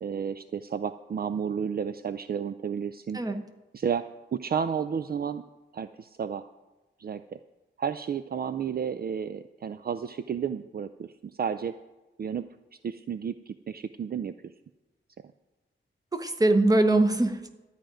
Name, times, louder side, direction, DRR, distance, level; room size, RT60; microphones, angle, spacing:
voice 1, 0.0-3.2 3.7-4.1 4.3-5.4 5.7-6.5 7.0-7.4 7.8-11.1 11.4-11.7 12.2-12.4 12.8-14.3, right 7 dB, 50° right, 11 dB, 0.4 m, -32 dB
voice 2, 16.1-17.5, right 2 dB, 20° right, 7 dB, 1.0 m, -22 dB
13.0 x 5.0 x 9.1 m, 1.1 s
wide cardioid pair, 135°, 20 cm